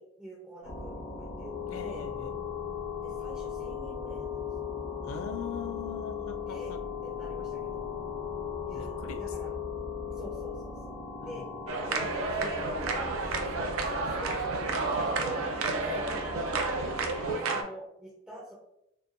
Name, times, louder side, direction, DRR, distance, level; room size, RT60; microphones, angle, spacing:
voice 1, 0.0-1.5 1.8-2.1 3.0-4.5 6.5-6.8 7.0-7.9 8.7-9.6 10.0-11.4 11.8-13.2 13.5-15.5 15.9-17.0 17.5-18.5, equal, 5° right, -5 dB, 0.4 m, -46 dB
sound 1, 0.6-17.3, left 2 dB, 50° left, 0.8 m, -40 dB
sound 2, 1.4-10.5, left 23 dB, 55° right, 0.7 m, -38 dB
voice 2, 1.7-2.3 5.0-6.8 8.7-9.3 11.2-11.4 15.8-16.1, left 6 dB, 75° left, 8 dB, 0.3 m, -41 dB
sound 3, 11.7-17.6, right 3 dB, 85° right, 0.4 m, -31 dB
2.7 x 2.2 x 2.5 m, 0.81 s
head